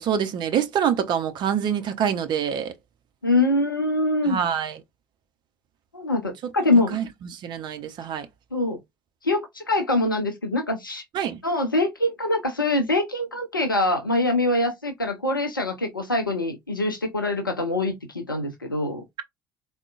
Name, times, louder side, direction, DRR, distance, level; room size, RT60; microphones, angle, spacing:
voice 1, 0.0-2.7 4.2-4.8 6.9-8.3 11.1-11.4, right 8 dB, 45° right, 0.6 m, -26 dB
voice 2, 3.2-4.4 5.9-7.0 8.5-8.8 9.2-11.0 11.4-19.0, left 2 dB, 90° left, 0.4 m, -24 dB
3.6 x 2.1 x 2.3 m
figure-of-eight pair, 55°, 11 cm